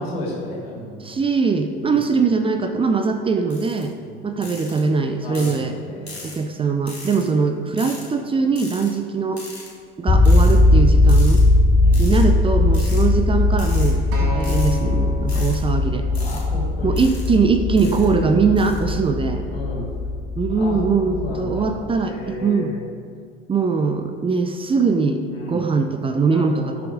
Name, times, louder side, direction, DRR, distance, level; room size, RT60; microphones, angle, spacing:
voice 1, 0.0-1.1 1.7-2.0 4.0-4.2 5.2-6.2 7.5-7.9 11.8-12.1 12.8-13.0 15.3-15.5 16.2-17.0 17.8-18.5 19.5-19.9 20.3-21.7 22.0-22.9 25.3-25.7 26.3-26.9, left 1 dB, 75° left, -4 dB, 3.3 m, -33 dB
voice 2, 1.0-3.9 4.2-5.7 6.2-9.4 10.0-11.4 12.0-16.1 16.8-19.4 20.4-22.7 23.5-26.7, right 4 dB, 15° right, 7 dB, 0.7 m, -21 dB
sound 1, 3.5-3.8 4.4-4.8 5.3-5.6 6.1-6.4 6.9-7.2 7.8-8.1 8.6-8.9 9.4-9.7 10.2-10.5 11.1-11.4 11.9-12.2 12.7-13.0 13.5-13.9 14.4-14.8 15.3-15.6 16.1-16.4 17.0-17.3 17.8-18.1 18.6-18.8, left 2 dB, 90° left, 2.2 m, -38 dB
sound 2, 10.1-22.0, left 2 dB, 15° left, 0.9 m, -19 dB
Acoustic guitar, 14.1-18.4 19.2-19.3, equal, 55° right, 2.1 m, -35 dB
17.5 x 7.2 x 3.7 m, 2.1 s
figure-of-eight pair, 70°, 31 cm